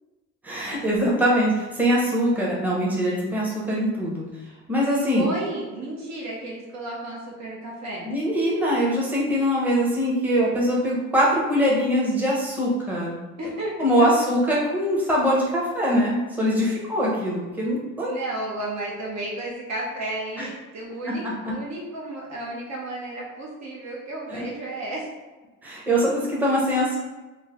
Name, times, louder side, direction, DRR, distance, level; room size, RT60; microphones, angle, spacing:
voice 1, 0.4-4.2 4.7-5.3 8.1-13.2 13.8-18.1 20.4-20.5 21.1-21.5 24.3-24.4 25.6-27.0, equal, 5° right, -5 dB, 0.7 m, -23 dB
voice 2, 5.1-8.1 13.4-14.1 16.6-17.0 18.0-25.1, right 1 dB, 60° right, -3 dB, 0.8 m, -33 dB
3.1 x 2.1 x 3.6 m, 1.2 s
cardioid pair, 110°, 31 cm